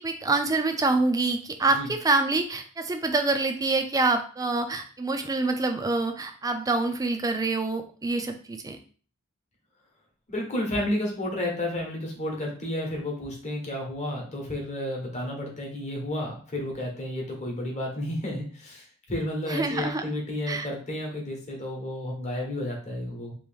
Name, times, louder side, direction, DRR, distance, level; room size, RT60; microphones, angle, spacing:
voice 1, 0.0-8.8 19.5-20.0 20.5-20.7, right 3 dB, 15° right, 6 dB, 0.4 m, -26 dB
voice 2, 10.3-23.3, left 1 dB, 30° left, -1 dB, 1.0 m, -31 dB
3.0 x 2.6 x 3.4 m, 0.41 s
head